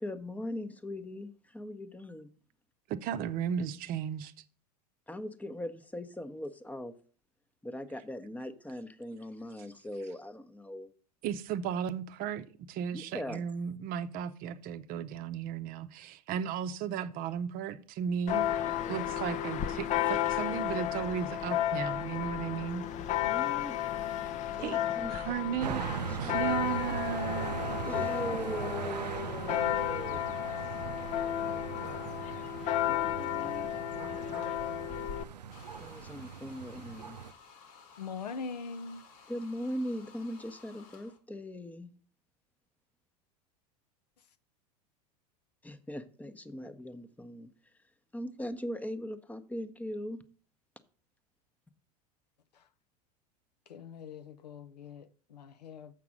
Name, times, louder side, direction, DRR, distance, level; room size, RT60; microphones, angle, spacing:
voice 1, 0.0-2.3 5.1-7.0 7.6-10.9 12.9-13.4 23.3-23.8 24.6-25.3 26.1-26.6 27.8-30.2 32.9-33.7 35.7-37.2 39.3-41.9 45.6-47.7 48.1-50.2, left 1 dB, 5° left, 0.8 m, -40 dB
voice 2, 2.9-4.3 11.2-18.5 18.9-22.9 24.6-24.8 25.1-25.9 26.2-27.6, right 8 dB, 45° right, 0.7 m, -35 dB
Church bell, 18.3-35.2, left 12 dB, 35° left, 0.6 m, -33 dB
sound 1, 25.6-37.3, right 7 dB, 90° right, 0.5 m, -39 dB
sound 2, 35.5-41.2, left 5 dB, 65° left, 1.5 m, -56 dB
voice 3, 38.0-39.0 52.5-52.7 53.7-56.0, left 5 dB, 85° left, 0.6 m, -42 dB
7.4 x 5.9 x 6.2 m
hypercardioid pair, 85°, 20 cm